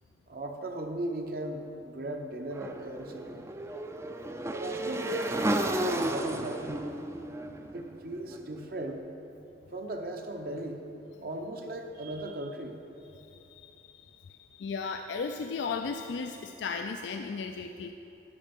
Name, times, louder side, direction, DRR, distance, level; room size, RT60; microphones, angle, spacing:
voice 1, 0.3-3.4 4.5-6.7 7.7-9.0 9.7-10.8 11.2-12.8, right 1 dB, 55° right, 3 dB, 0.8 m, -37 dB
Motorcycle / Engine, 2.5-8.6, right 1 dB, 15° right, 0.4 m, -33 dB
voice 2, 13.1-17.9, left 5 dB, 80° left, 5 dB, 0.4 m, -36 dB
12.0 x 5.5 x 5.3 m, 2.9 s
head